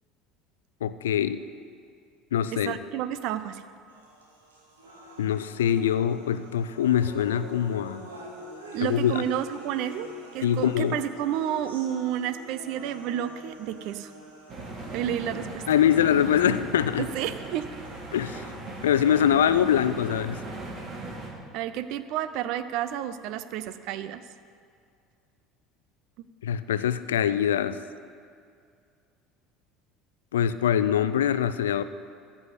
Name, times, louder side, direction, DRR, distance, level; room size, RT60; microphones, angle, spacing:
voice 1, 0.8-1.4 2.3-2.7 5.2-8.0 8.8-9.2 10.4-11.0 15.7-17.0 18.1-18.4 18.8-20.4 26.4-27.8 30.3-31.8, left 9 dB, 80° left, 13 dB, 0.4 m, -23 dB
voice 2, 2.5-3.6 8.7-10.1 10.3-14.1 14.9-15.6 17.0-17.7 21.5-24.2 26.2-26.3, right 11 dB, 60° right, 13 dB, 0.6 m, -30 dB
sound 1, 3.9-19.9, equal, 85° right, 1.9 m, -46 dB
sound 2, 14.5-21.3, right 2 dB, 45° right, 2.8 m, -38 dB
14.5 x 6.3 x 8.2 m, 2.3 s
hypercardioid pair, 70°, 0 cm